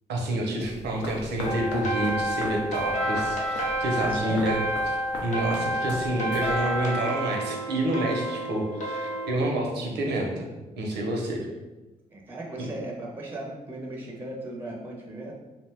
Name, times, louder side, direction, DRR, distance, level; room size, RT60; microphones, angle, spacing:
voice 1, 0.1-4.6 5.2-10.5 10.8-11.5 12.6-12.7, right 1 dB, 75° right, 0 dB, 0.7 m, -28 dB
sound 1, 0.6-6.9, left 2 dB, 80° left, 0.6 m, -40 dB
sound 2, 1.4-9.3, equal, 45° left, 0.9 m, -29 dB
voice 2, 3.8-4.5 12.1-15.3, right 2 dB, 10° right, -1 dB, 0.6 m, -37 dB
2.5 x 2.1 x 3.3 m, 1.1 s
supercardioid pair, 60°, 18 cm